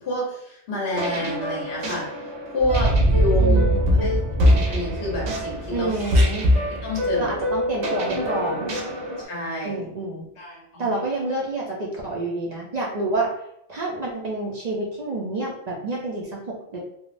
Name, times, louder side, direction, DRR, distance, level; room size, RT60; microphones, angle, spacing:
voice 1, 0.0-2.1 2.5-3.6 4.0-4.2 4.7-5.9 6.8-7.4 9.2-9.8 10.4-10.9, left 1 dB, 65° left, -4 dB, 1.1 m, -28 dB
sound 1, 0.9-9.2, left 1 dB, 85° right, 1.0 m, -24 dB
sound 2, 2.6-7.2, right 2 dB, 25° left, 0.7 m, -23 dB
voice 2, 3.4-4.2 5.7-6.5 7.2-8.7 9.6-10.3 10.8-13.3 13.7-16.8, right 2 dB, 55° right, -2 dB, 0.5 m, -28 dB
3.5 x 2.0 x 2.5 m, 0.74 s
omnidirectional pair, 1.2 m